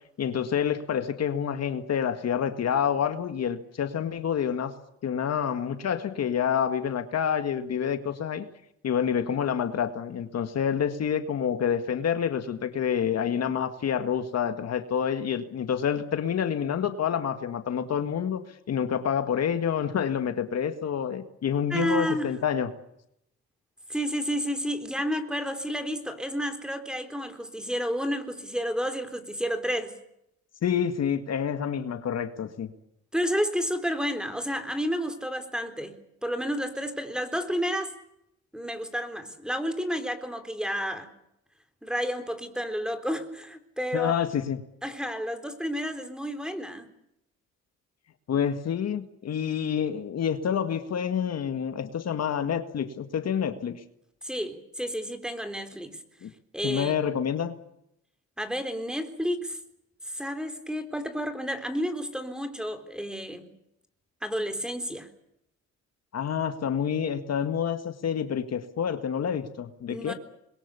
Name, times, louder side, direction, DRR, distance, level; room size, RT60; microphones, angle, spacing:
voice 1, 0.2-4.7 5.0-8.5 8.8-18.4 18.7-22.7 30.6-32.7 43.9-44.6 48.3-53.8 56.2-56.3 56.6-57.6 66.1-70.1, left 8 dB, 55° left, 1.9 m, -28 dB
voice 2, 21.7-22.4 23.9-29.9 33.1-36.0 36.2-37.9 38.5-41.1 41.8-44.1 44.8-46.9 54.2-56.0 56.5-56.9 58.4-59.6 60.1-63.5 64.2-65.1 69.9-70.1, equal, 5° right, 3.8 m, -31 dB
26.5 x 22.0 x 7.0 m
cardioid pair, 90°, 30 cm